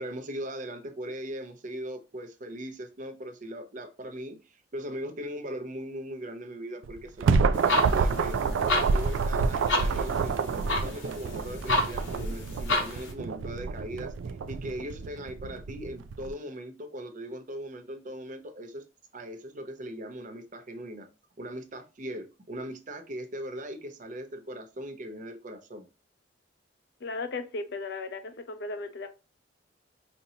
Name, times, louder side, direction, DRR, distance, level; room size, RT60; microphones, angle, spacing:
voice 1, 0.0-8.4 8.7-14.1 14.5-18.8 19.1-21.1 21.4-25.9, equal, 40° right, 0.6 m, -39 dB
sound 1, 6.8-16.3, right 5 dB, 80° right, 0.3 m, -28 dB
sound 2, 7.5-13.1, left 2 dB, 75° left, 1.1 m, -31 dB
voice 2, 27.0-29.1, left 3 dB, 60° left, 0.6 m, -36 dB
5.2 x 2.8 x 2.7 m
head